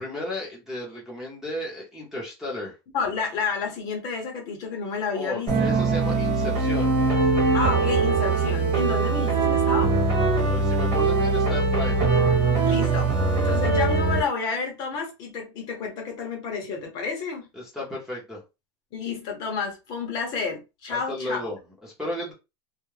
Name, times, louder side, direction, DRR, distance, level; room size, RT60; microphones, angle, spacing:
voice 1, 0.0-2.8 5.1-7.0 10.3-12.1 17.5-18.4 20.9-22.3, left 1 dB, 5° right, 0.7 m, -34 dB
voice 2, 2.9-5.5 7.5-9.9 12.6-13.1 13.4-17.5 18.9-21.5, left 5 dB, 30° left, 0.7 m, -30 dB
sound 1, 5.5-14.2, right 3 dB, 25° right, 1.2 m, -22 dB
2.3 x 2.1 x 3.1 m
supercardioid pair, 170°, 13 cm